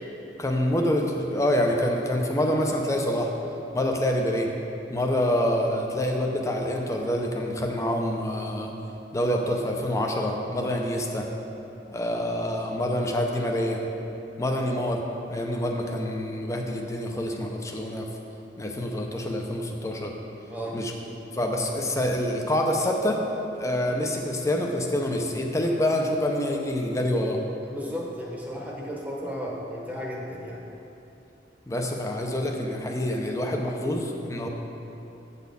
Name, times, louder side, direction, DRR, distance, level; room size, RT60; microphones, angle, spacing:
voice 1, 0.4-3.3 3.7-4.5 4.9-8.7 9.1-11.3 11.9-13.8 14.4-18.1 18.6-20.1 20.7-20.9 21.3-23.2 23.6-27.5 31.7-34.5, left 1 dB, 15° left, 1 dB, 0.6 m, -26 dB
voice 2, 20.5-20.8 27.6-30.7, equal, 10° right, -3 dB, 1.0 m, -34 dB
8.5 x 4.2 x 6.8 m, 2.9 s
head